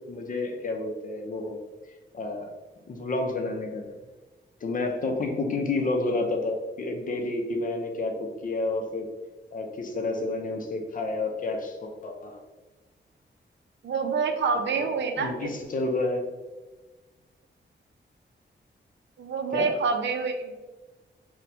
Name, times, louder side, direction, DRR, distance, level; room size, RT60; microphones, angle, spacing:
voice 1, 0.1-1.6 2.1-2.5 2.9-3.9 4.6-9.1 9.5-12.4 14.7-14.9 15.2-16.2 19.5-19.7, left 2 dB, 45° left, 3 dB, 0.5 m, -30 dB
voice 2, 13.8-15.5 19.2-20.5, right 5 dB, 70° right, 5 dB, 0.5 m, -27 dB
4.2 x 2.2 x 2.6 m, 1.2 s
wide cardioid pair, 140°, 19 cm